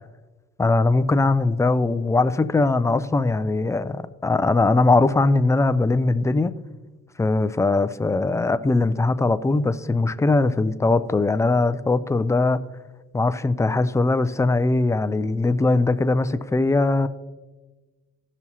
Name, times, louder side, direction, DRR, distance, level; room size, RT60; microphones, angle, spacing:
voice 1, 0.6-6.5 7.2-12.6 13.1-17.1, left 3 dB, 10° left, 0.3 m, -20 dB
15.0 x 6.1 x 2.8 m
cardioid pair, 90°, 30 cm